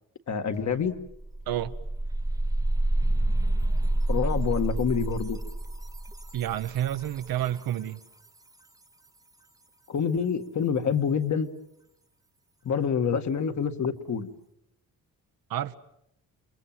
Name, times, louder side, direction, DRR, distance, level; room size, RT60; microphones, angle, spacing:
voice 1, 0.3-1.0 4.1-5.4 9.9-11.5 12.6-14.3, left 6 dB, 50° left, 1.9 m, -27 dB
sound 1, 0.5-0.6 1.0-7.7, right 1 dB, 10° right, 0.9 m, -28 dB
voice 2, 6.3-8.0 15.5-15.7, right 12 dB, 75° right, 1.1 m, -29 dB
28.5 x 23.0 x 7.5 m
cardioid pair, 130°, 35 cm